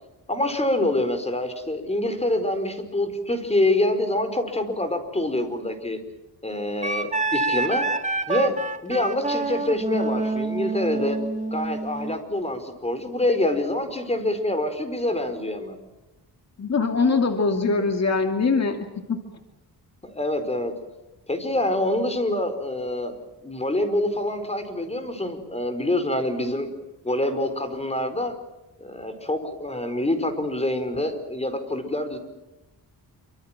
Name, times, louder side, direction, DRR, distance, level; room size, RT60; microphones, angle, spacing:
voice 1, 0.3-6.0 6.4-7.9 8.3-8.5 8.8-11.2 11.5-15.8 20.0-20.7 21.3-23.2 23.4-26.7 27.0-28.3 28.8-32.2, left 1 dB, 15° left, 9 dB, 4.9 m, -26 dB
Wind instrument woodwind instrument, 6.8-12.2, right 3 dB, 20° right, 2.0 m, -27 dB
voice 2, 16.6-18.8 19.1-19.2, left 4 dB, 40° left, 5 dB, 2.7 m, -22 dB
27.5 x 25.5 x 7.6 m, 0.99 s
cardioid pair, 115°, 39 cm